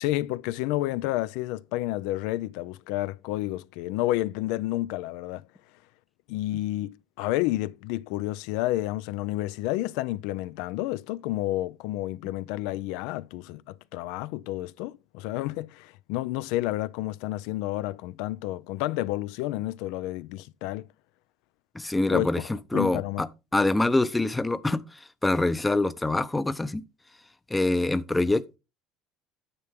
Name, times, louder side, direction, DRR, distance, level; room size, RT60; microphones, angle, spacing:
voice 1, 0.0-5.4 6.3-20.9 22.1-22.3 22.7-23.2, left 16 dB, 80° left, 0.4 m, -30 dB
voice 2, 21.7-23.3 23.5-26.8 27.5-28.6, left 2 dB, 10° left, 0.6 m, -25 dB
9.6 x 7.0 x 3.5 m
cardioid pair, 130°, 0 cm